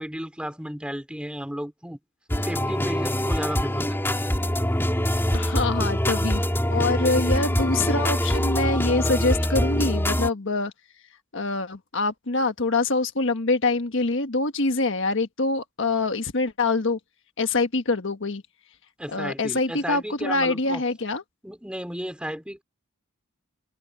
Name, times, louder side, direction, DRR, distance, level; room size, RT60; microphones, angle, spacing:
voice 1, 0.0-2.0 2.4-4.0 19.0-20.8 21.4-22.6, equal, 5° right, 3.4 m, -33 dB
sound 1, 2.3-10.3, equal, 10° left, 4.0 m, -24 dB
voice 2, 5.3-6.4 6.7-10.7 11.3-17.0 17.4-18.4 19.1-21.2, left 3 dB, 60° left, 1.4 m, -25 dB
head